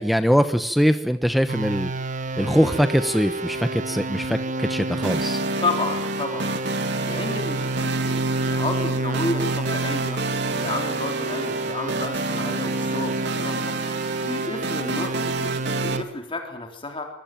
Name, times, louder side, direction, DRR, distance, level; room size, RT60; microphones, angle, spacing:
voice 1, 0.0-1.9 2.4-5.4, equal, ahead, 9 dB, 1.0 m, -22 dB
sound 1, 1.5-16.0, right 2 dB, 45° right, 1.6 m, -29 dB
sound 2, 5.0-16.0, right 2 dB, 65° right, 2.6 m, -29 dB
voice 2, 5.6-6.5 7.0-10.2 10.6-13.8 14.2-17.1, left 2 dB, 30° left, 3 dB, 3.5 m, -31 dB
26.0 x 21.0 x 9.2 m, 0.70 s
head